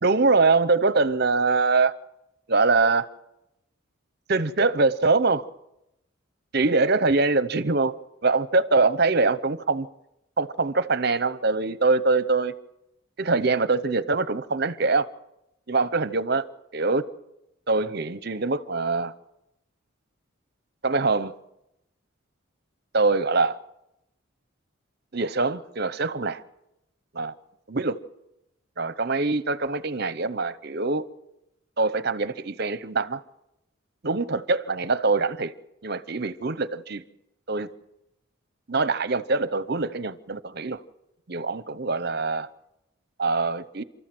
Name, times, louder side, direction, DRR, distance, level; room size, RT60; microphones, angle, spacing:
voice 1, 0.0-1.9 2.5-3.1 4.3-5.4 6.5-7.9 8.2-9.9 10.4-12.5 13.2-15.1 15.7-16.5 16.7-17.1 17.7-19.1 20.8-21.3 22.9-23.6 25.1-26.4 27.1-27.3 27.7-28.0 28.8-31.0 31.8-33.2 34.0-35.5 35.8-37.0 37.5-37.7 38.7-40.8 41.3-42.5 43.2-43.8, right 3 dB, 50° right, 0.9 m, -23 dB
28.5 x 13.5 x 7.8 m
head